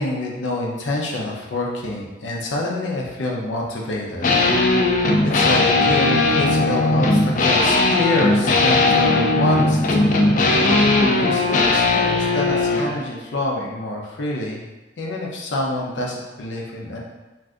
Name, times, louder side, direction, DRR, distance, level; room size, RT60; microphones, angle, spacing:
voice 1, 0.0-4.3 5.2-10.2 11.1-14.6 15.0-17.0, left 1 dB, 90° left, -2 dB, 0.6 m, -26 dB
sound 1, 4.2-12.9, left 2 dB, 45° left, 0.3 m, -18 dB
2.5 x 2.4 x 3.4 m, 1.2 s
head